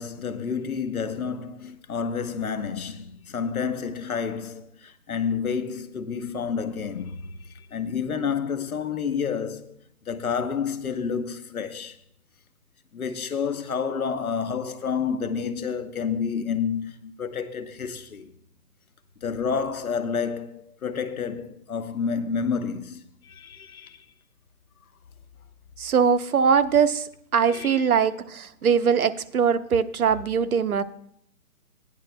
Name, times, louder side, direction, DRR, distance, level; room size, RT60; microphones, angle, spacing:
voice 1, 0.0-9.8 10.1-12.0 12.9-18.3 19.2-24.0 27.5-27.9, left 6 dB, 70° left, 1.1 m, -29 dB
voice 2, 25.8-30.8, right 6 dB, 70° right, 0.8 m, -22 dB
17.0 x 10.0 x 2.2 m
hypercardioid pair, 180°, 45 cm